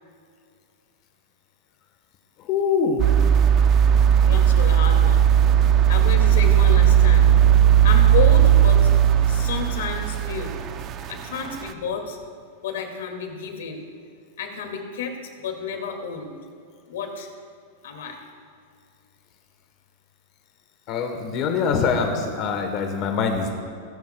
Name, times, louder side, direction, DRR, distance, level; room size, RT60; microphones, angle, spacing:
voice 1, 2.5-3.0 20.9-23.5, left 5 dB, 35° left, 4 dB, 1.1 m, -23 dB
sound 1, 3.0-11.2 11.7-11.8, right 10 dB, 25° right, 0.5 m, -16 dB
voice 2, 4.2-5.3 5.9-7.3 7.8-8.9 9.3-10.6 11.1-12.2 12.6-13.8 14.4-16.4 16.9-17.3 17.8-18.2, left 5 dB, 80° left, 3 dB, 2.2 m, -30 dB
19.0 x 15.5 x 2.3 m, 2.3 s
supercardioid pair, 170°, 0 cm